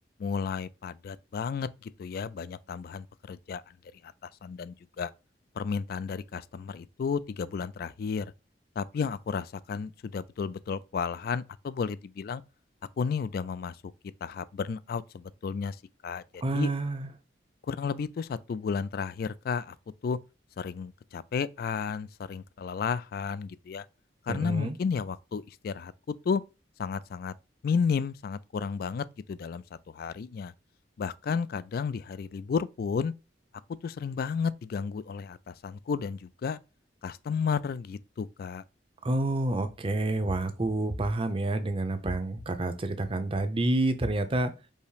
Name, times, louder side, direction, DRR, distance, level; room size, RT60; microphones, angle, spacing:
voice 1, 0.2-3.6 4.0-5.1 5.6-8.3 8.8-12.4 13.0-13.8 14.2-15.8 16.0-16.7 17.7-19.8 20.0-20.2 20.6-23.9 24.3-26.4 26.8-27.3 27.6-30.5 31.0-33.1 33.8-36.6 37.0-38.6, left 6 dB, 55° left, 0.3 m, -32 dB
voice 2, 16.4-17.1 24.3-24.8 39.0-44.5, right 2 dB, 30° right, 0.6 m, -28 dB
5.4 x 2.0 x 4.9 m
head